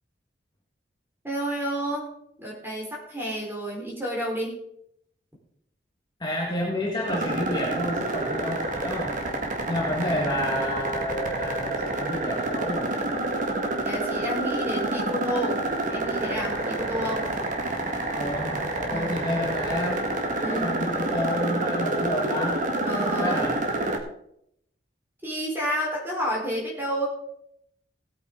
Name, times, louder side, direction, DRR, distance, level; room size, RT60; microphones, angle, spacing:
voice 1, 1.2-2.1 2.4-4.5 13.8-17.3 18.9-19.1 20.4-20.7 22.8-23.4 25.2-27.1, equal, 10° right, -3 dB, 4.4 m, -30 dB
voice 2, 6.2-9.2 9.7-12.9 18.1-22.7 23.1-23.7, equal, 25° left, -3 dB, 1.9 m, -30 dB
sound 1, 7.0-24.0, right 2 dB, 40° right, 1.9 m, -28 dB
18.0 x 8.7 x 3.9 m, 0.74 s
head